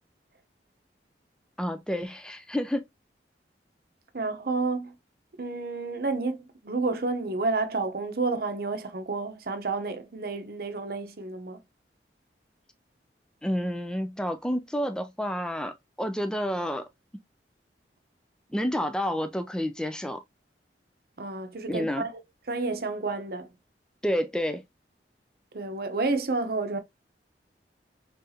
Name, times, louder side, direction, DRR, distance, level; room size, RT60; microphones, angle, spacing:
voice 1, 1.6-2.8 13.4-16.9 18.5-20.2 21.7-22.1 24.0-24.6, equal, 5° left, 0.4 m, -29 dB
voice 2, 4.1-4.9 5.4-11.6 21.2-22.1 22.5-23.5 25.5-26.8, right 3 dB, 60° right, 0.8 m, -30 dB
4.0 x 3.8 x 2.7 m
head